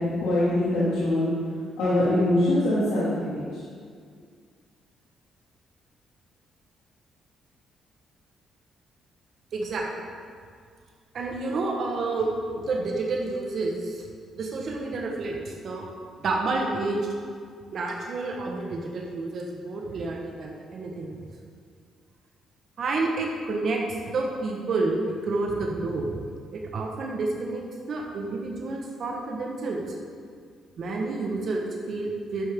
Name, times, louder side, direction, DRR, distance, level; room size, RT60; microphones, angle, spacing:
voice 1, 0.0-1.3 1.8-3.4, left 1 dB, 80° left, -10 dB, 2.7 m, -23 dB
voice 2, 9.5-10.1 11.1-14.1 14.4-15.9 16.2-17.1 17.7-21.2 22.8-26.2 26.5-29.8 30.8-32.4, right 3 dB, 60° right, 0 dB, 1.5 m, -29 dB
11.0 x 9.3 x 3.8 m, 2.1 s
cardioid pair, 90°, 0 cm